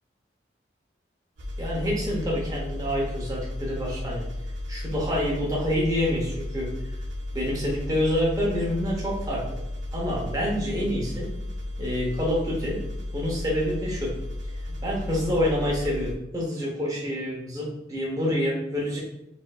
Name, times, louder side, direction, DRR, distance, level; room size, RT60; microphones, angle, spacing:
sound 1, 1.4-16.1, left 1 dB, 75° right, 0.6 m, -34 dB
voice 1, 1.6-4.2 4.7-6.7 7.3-9.6 9.9-11.3 11.8-12.8 13.1-14.2 14.8-19.0, equal, 20° right, -4 dB, 0.8 m, -27 dB
4.2 x 2.6 x 2.3 m, 0.85 s
head